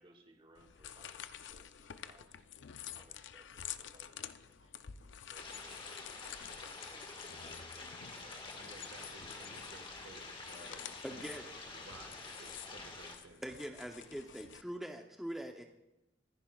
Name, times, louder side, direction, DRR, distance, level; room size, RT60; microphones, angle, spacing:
voice 1, 0.0-2.4 2.9-4.8 5.3-6.7, right 1 dB, 30° right, 3 dB, 1.8 m, -65 dB
sound 1, 0.5-14.6, left 9 dB, 75° left, 0.5 m, -50 dB
sound 2, 5.3-13.2, left 3 dB, 30° left, 1.6 m, -48 dB
voice 2, 8.2-11.4 11.7-13.7, right 2 dB, 70° right, 5 dB, 1.4 m, -57 dB
voice 3, 11.0-11.5 13.4-15.6, equal, ahead, 3 dB, 0.6 m, -43 dB
24.5 x 10.5 x 2.3 m, 0.94 s
head